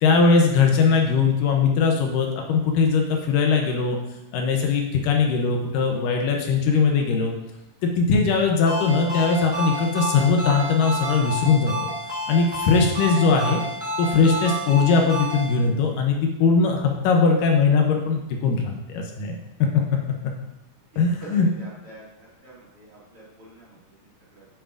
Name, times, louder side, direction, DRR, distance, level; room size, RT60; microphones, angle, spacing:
voice 1, 0.0-4.0 4.3-7.4 7.8-11.7 12.3-13.6 14.0-19.3 21.0-21.5, left 4 dB, 80° left, 2 dB, 2.3 m, -20 dB
Ringtone, 8.7-15.5, equal, 15° right, 2.1 m, -30 dB
voice 2, 21.2-24.5, right 2 dB, 45° right, -8 dB, 2.8 m, -46 dB
7.7 x 7.1 x 2.5 m, 0.91 s
omnidirectional pair, 4.0 m